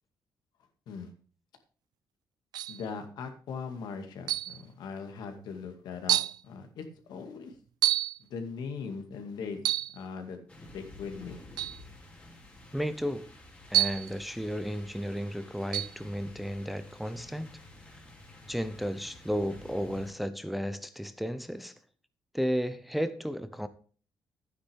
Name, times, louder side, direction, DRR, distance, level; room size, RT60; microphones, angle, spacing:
sound 1, 2.5-2.9 4.3-4.6 5.4-5.5 6.1-6.4 7.8-8.2 9.6-10.0 11.6-11.8 13.7-14.1 15.7-16.0, right 13 dB, 70° right, 0.4 m, -28 dB
voice 1, 2.7-6.2 6.4-7.5 8.2-9.6 9.9-10.4 10.7-11.4, left 5 dB, 75° left, 2.2 m, -40 dB
sound 2, 10.5-20.1, left 2 dB, 15° left, 2.5 m, -51 dB
voice 2, 12.7-13.3 13.7-17.5 17.9-18.0 18.5-21.7 22.3-23.7, equal, ahead, 0.6 m, -33 dB
12.0 x 9.7 x 3.6 m
cardioid pair, 170°, 7 cm